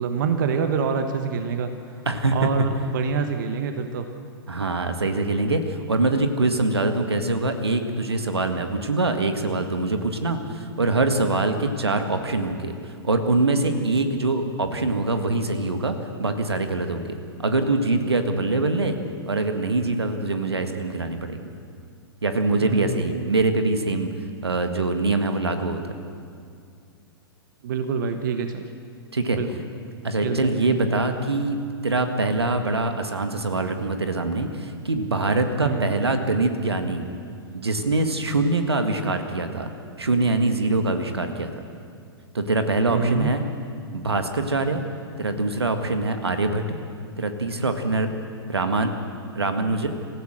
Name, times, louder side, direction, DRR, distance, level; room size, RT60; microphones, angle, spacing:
voice 1, 0.0-1.8 2.3-4.1 22.6-23.4 27.6-28.7 29.3-29.6 30.2-30.6 35.6-36.0 42.9-43.3, right 6 dB, 50° right, 7 dB, 1.4 m, -26 dB
voice 2, 2.1-2.5 4.5-19.0 19.3-21.5 22.2-24.1 24.4-26.0 29.1-29.4 30.0-37.0 37.5-39.7 40.0-41.5 42.3-43.4 43.9-44.8 45.2-46.6 47.2-48.1 48.5-48.9 49.4-49.9, right 2 dB, 75° right, 7 dB, 1.8 m, -24 dB
27.0 x 16.0 x 6.6 m, 2.3 s
figure-of-eight pair, 105°, 13 cm